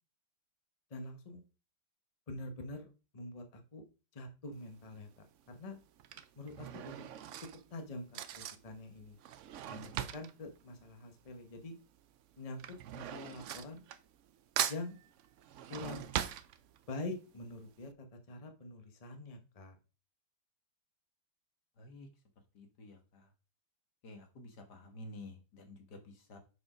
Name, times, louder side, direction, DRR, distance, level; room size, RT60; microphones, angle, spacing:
voice 1, 0.9-1.4 2.3-2.9 3.1-3.8 4.1-5.8 6.4-7.1 7.4-9.2 9.7-11.8 12.4-12.6 12.9-13.8 14.7-15.0 15.7-16.1 16.9-19.8, left 2 dB, 25° left, 5 dB, 1.0 m, -45 dB
Drawer open or close / Cutlery silverware, 4.6-4.9 5.8-11.7 11.9-14.3 14.6-17.1 17.5-17.6 17.8-17.9, right 10 dB, 90° right, 0.6 m, -41 dB
voice 2, 21.8-22.1 22.5-23.3 24.0-26.4, left 2 dB, 65° left, 5 dB, 2.0 m, -51 dB
6.9 x 4.9 x 4.9 m, 0.33 s
omnidirectional pair, 1.9 m